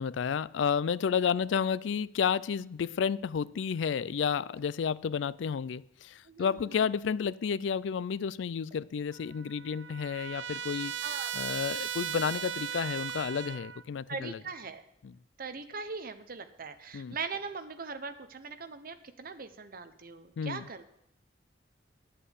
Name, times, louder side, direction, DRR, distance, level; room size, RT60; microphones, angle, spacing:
voice 1, 0.0-11.0 11.3-14.4 15.0-15.1 16.9-17.2 20.4-20.7, left 6 dB, 85° left, 0.4 m, -31 dB
voice 2, 6.2-6.9 11.0-11.3 14.1-14.8 15.4-20.9, right 4 dB, 55° right, 0.9 m, -40 dB
sound 1, 6.5-7.2 8.7-9.0 10.1-11.8 12.4-12.7 13.0-13.3 14.0-14.4 15.4-15.6, left 1 dB, 35° right, 2.4 m, -64 dB
Trumpet, 9.1-13.8, right 8 dB, 75° right, 0.4 m, -37 dB
10.0 x 7.8 x 8.2 m
head